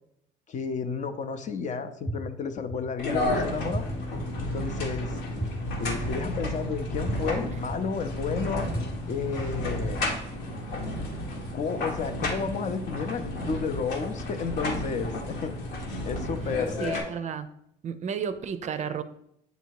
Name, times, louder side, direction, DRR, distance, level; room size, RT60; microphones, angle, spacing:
voice 1, 0.5-3.9 4.4-5.2 5.8-8.7 9.1-10.0 11.5-15.5 16.0-16.8, left 5 dB, 45° left, 9 dB, 0.6 m, -32 dB
sound 1, 2.1-2.2 2.7-2.8 3.7-3.8 4.4-4.5 5.4-5.5 6.0-6.1 7.1-7.2 7.7-7.8 8.7-8.8 9.4-9.5, right 2 dB, 5° left, 0.6 m, -31 dB
sound 2, 3.0-17.0, left 1 dB, 80° left, 1.3 m, -32 dB
voice 2, 16.8-17.5 17.8-19.0, right 7 dB, 45° right, 11 dB, 0.4 m, -32 dB
7.9 x 2.7 x 4.6 m, 0.75 s
cardioid pair, 110°, 17 cm